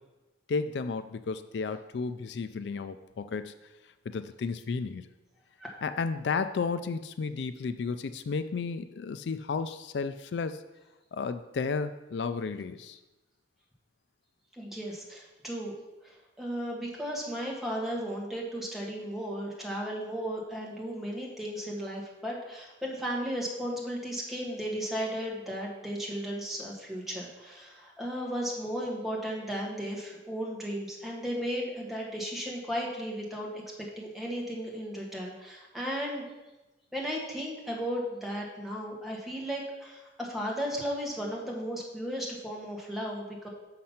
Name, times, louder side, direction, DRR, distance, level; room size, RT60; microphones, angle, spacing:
voice 1, 0.5-3.5 4.1-5.1 5.8-10.6 11.1-13.0, left 4 dB, 75° left, 11 dB, 0.4 m, -33 dB
voice 2, 14.6-15.7 16.0-33.6 34.0-36.2 36.9-43.5, equal, ahead, -3 dB, 1.5 m, -35 dB
6.4 x 5.9 x 5.7 m, 1.1 s
head